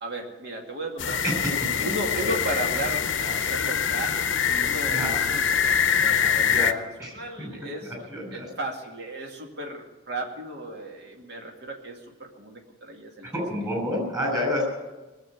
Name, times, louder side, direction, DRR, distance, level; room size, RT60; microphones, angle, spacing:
voice 1, 0.0-1.3 1.8-5.1 5.3-7.9 8.3-13.3, right 1 dB, 55° right, 2 dB, 2.3 m, -35 dB
sound 1, 1.0-6.7, left 7 dB, 65° left, 0.8 m, -24 dB
voice 2, 6.5-7.5 7.8-8.5 13.2-14.6, left 1 dB, 20° right, 0 dB, 6.0 m, -29 dB
19.5 x 7.7 x 9.4 m, 1.1 s
head